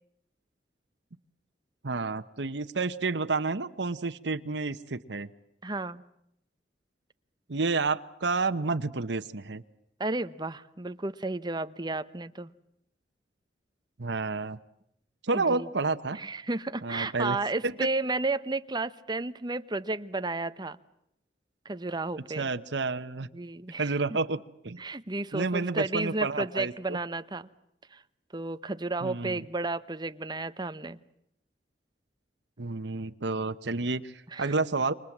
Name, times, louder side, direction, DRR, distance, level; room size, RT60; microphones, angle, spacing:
voice 1, 1.8-5.3 7.5-9.6 14.0-14.6 15.2-16.2 16.8-17.4 17.6-17.7 22.4-23.3 23.8-24.4 24.6-24.8 25.3-27.0 29.0-29.4 32.6-34.1 34.4-34.9, right 3 dB, 80° right, 8 dB, 1.0 m, -30 dB
voice 2, 5.6-6.0 10.0-12.5 15.3-15.7 16.1-20.8 21.6-22.5 23.3-23.9 24.8-27.5 27.9-28.0 28.3-31.0 34.3-34.5, right 2 dB, 25° right, 12 dB, 1.0 m, -32 dB
28.5 x 24.5 x 7.3 m, 0.78 s
head